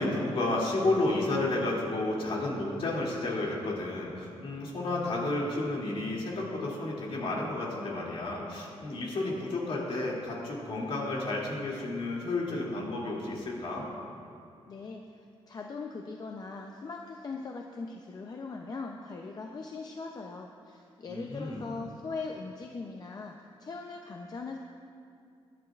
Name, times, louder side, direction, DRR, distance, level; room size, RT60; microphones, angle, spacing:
voice 1, 0.0-13.9 21.1-21.6, left 2 dB, 60° left, -4 dB, 2.6 m, -31 dB
voice 2, 14.7-15.1 15.5-24.6, left 4 dB, 40° left, 2 dB, 0.6 m, -40 dB
21.5 x 11.0 x 2.4 m, 2.5 s
wide cardioid pair, 150°, 11 cm